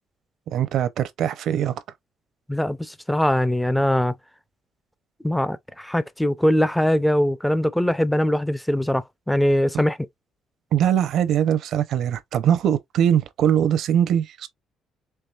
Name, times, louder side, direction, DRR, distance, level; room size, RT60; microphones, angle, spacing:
voice 1, 0.5-1.8 9.7-9.8 10.7-14.5, right 9 dB, 60° right, 0.6 m, -21 dB
voice 2, 2.5-4.2 5.2-10.0, equal, 5° left, 0.4 m, -22 dB
4.6 x 3.0 x 2.3 m
cardioid pair, 150°, 0 cm